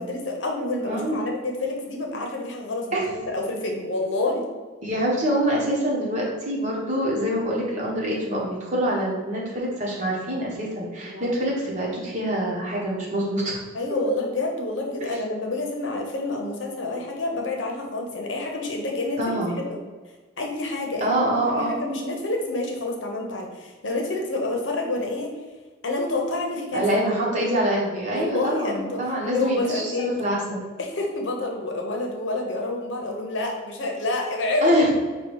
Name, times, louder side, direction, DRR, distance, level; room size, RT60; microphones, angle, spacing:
voice 1, 0.0-4.5 11.0-11.3 13.7-19.4 19.7-19.8 20.4-25.3 25.8-26.8 28.1-30.1 30.8-34.9, left 2 dB, 70° left, 1 dB, 0.8 m, -28 dB
voice 2, 0.8-1.3 2.9-3.0 4.8-13.6 15.0-15.1 19.2-19.6 21.0-21.8 26.7-30.6 34.6-34.9, equal, 35° right, -4 dB, 1.2 m, -25 dB
4.8 x 2.3 x 4.6 m, 1.4 s
head